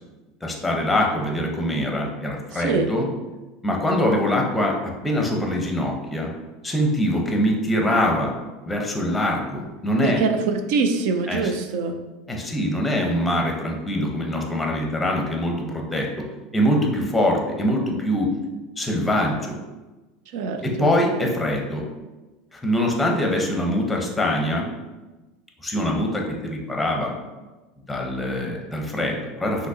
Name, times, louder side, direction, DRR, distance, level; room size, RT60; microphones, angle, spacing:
voice 1, 0.4-3.1 3.6-4.8 5.0-6.3 6.6-8.3 8.6-10.2 11.3-11.5 12.3-16.2 16.5-18.3 18.8-19.6 20.6-21.8 22.5-24.7 25.6-27.1 27.9-29.7, left 1 dB, 5° left, 0 dB, 0.7 m, -23 dB
voice 2, 2.5-2.9 10.0-12.0 20.3-20.9, right 4 dB, 65° right, 7 dB, 0.4 m, -24 dB
5.9 x 2.8 x 2.7 m, 1.2 s
supercardioid pair, 140°, 0 cm